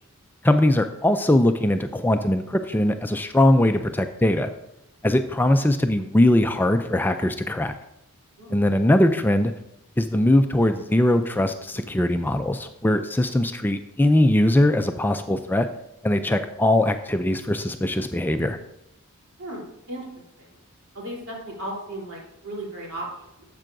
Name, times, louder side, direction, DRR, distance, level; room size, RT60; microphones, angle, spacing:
voice 1, 0.4-4.5 5.0-7.7 8.5-9.5 10.0-15.7 16.0-18.6, left 1 dB, 10° left, 7 dB, 0.3 m, -21 dB
voice 2, 19.4-20.0 20.4-20.5 20.9-23.4, right 1 dB, 70° right, -3 dB, 3.4 m, -36 dB
12.0 x 7.5 x 2.6 m, 0.82 s
head